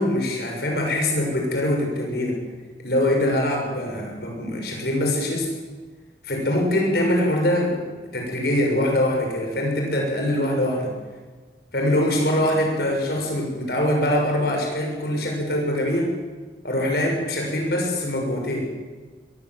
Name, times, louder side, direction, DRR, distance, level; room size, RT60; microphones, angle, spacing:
voice 1, 0.0-2.4 2.8-5.5 6.2-7.8 8.1-10.9 11.7-16.1 16.6-18.7, left 1 dB, 65° left, 1 dB, 6.7 m, -23 dB
21.5 x 15.5 x 8.1 m, 1.4 s
head